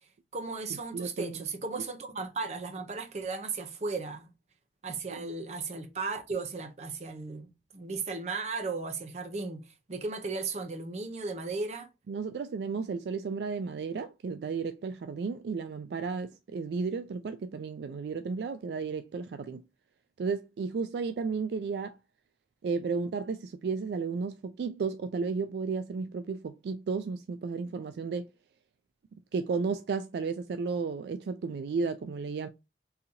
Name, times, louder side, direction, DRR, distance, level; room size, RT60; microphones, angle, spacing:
voice 1, 0.3-4.3 4.8-11.9, right 4 dB, 40° right, 0.7 m, -36 dB
voice 2, 0.9-1.4 5.1-5.2 12.1-19.6 20.2-22.0 22.6-28.3 29.3-32.5, right 5 dB, 65° right, 0.3 m, -33 dB
3.9 x 2.8 x 2.7 m
head